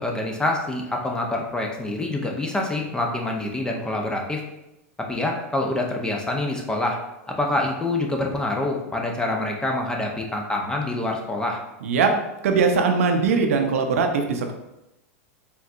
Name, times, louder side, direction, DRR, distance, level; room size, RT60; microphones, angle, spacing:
voice 1, 0.0-4.4 5.1-7.0 7.3-11.6, left 2 dB, 10° left, 1 dB, 0.6 m, -26 dB
voice 2, 11.8-12.1 12.4-14.5, right 5 dB, 75° right, 5 dB, 0.6 m, -20 dB
4.5 x 3.5 x 2.5 m, 0.93 s
hypercardioid pair, 115°, 8 cm